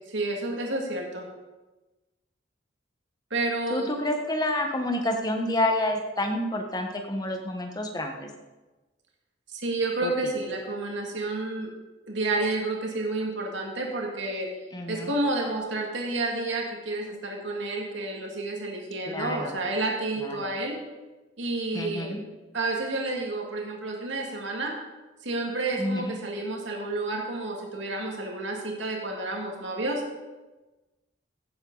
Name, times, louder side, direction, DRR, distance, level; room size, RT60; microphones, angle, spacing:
voice 1, 0.1-1.3 3.3-3.9 9.5-11.7 12.1-14.5 14.9-20.8 21.4-22.2 22.5-24.7 25.2-30.0, right 2 dB, 70° right, 0 dB, 2.3 m, -30 dB
voice 2, 3.7-8.3 10.0-10.1 14.7-15.1 19.1-19.6 20.2-20.5 21.7-22.2 25.8-26.1, left 1 dB, 20° left, 4 dB, 1.3 m, -29 dB
15.5 x 8.0 x 4.0 m, 1.1 s
head